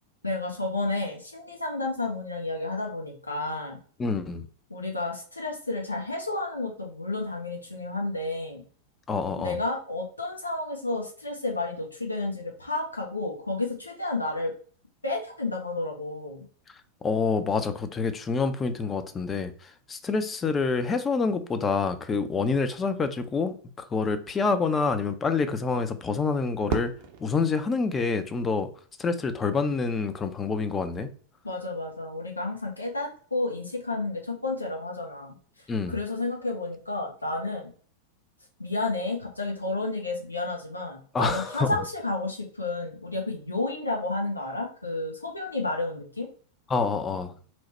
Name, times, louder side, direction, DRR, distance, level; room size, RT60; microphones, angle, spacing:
voice 1, 0.2-3.8 4.7-8.6 9.4-14.5 15.0-16.4 31.4-35.4 35.9-37.7 38.6-46.3, left 2 dB, 85° left, 0.7 m, -31 dB
voice 2, 4.0-4.5 9.1-9.6 17.0-26.9 27.2-28.7 29.0-31.1 35.7-35.9 41.1-41.7 46.7-47.3, left 4 dB, 20° left, 0.4 m, -27 dB
Fireworks, 26.7-28.9, right 5 dB, 45° right, 0.5 m, -36 dB
3.0 x 2.1 x 4.1 m
figure-of-eight pair, 90°, 0 cm